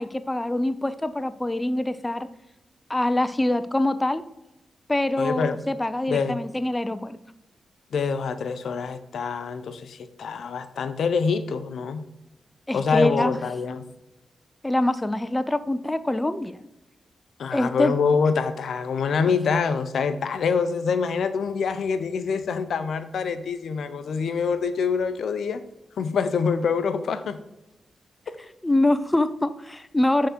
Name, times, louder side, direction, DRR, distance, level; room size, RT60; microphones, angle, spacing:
voice 1, 0.0-2.3 2.9-4.2 4.9-7.2 12.7-13.3 14.6-16.6 17.5-18.0 28.6-30.3, left 1 dB, 15° left, 12 dB, 0.5 m, -24 dB
voice 2, 5.2-5.6 6.1-6.4 7.9-12.0 12.7-13.8 17.4-25.6 26.0-27.4, left 5 dB, 80° left, 11 dB, 0.6 m, -25 dB
6.6 x 3.7 x 4.3 m, 0.93 s
cardioid pair, 60°, 0 cm